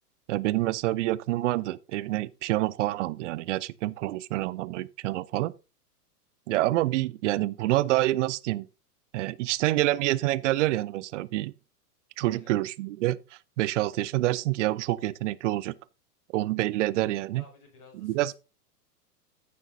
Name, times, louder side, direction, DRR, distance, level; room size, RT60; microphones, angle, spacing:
voice 1, 0.3-5.5 6.5-8.7 9.1-11.5 12.2-15.7 16.3-17.4 18.0-18.3, right 17 dB, 50° right, 0.6 m, -27 dB
voice 2, 12.2-12.6 17.3-18.3, left 4 dB, 40° left, 6.1 m, -54 dB
14.5 x 6.4 x 2.7 m
hypercardioid pair, 105°, 47 cm